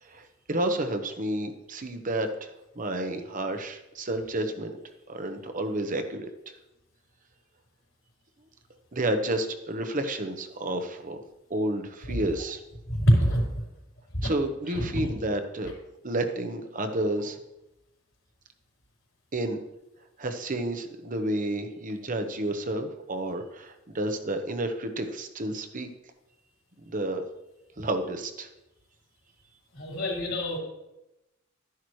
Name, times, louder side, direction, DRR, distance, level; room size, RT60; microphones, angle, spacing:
voice 1, 0.0-2.5 2.8-4.8 5.1-6.3 8.9-11.2 11.5-12.6 14.2-15.7 16.0-17.4 19.3-19.6 20.2-25.9 26.9-27.2 27.8-28.5, right 1 dB, 40° right, 7 dB, 1.0 m, -30 dB
voice 2, 12.9-13.6 14.1-14.3 14.7-15.1 29.7-30.6, equal, 70° left, -4 dB, 3.9 m, -25 dB
13.0 x 10.5 x 3.2 m, 0.93 s
head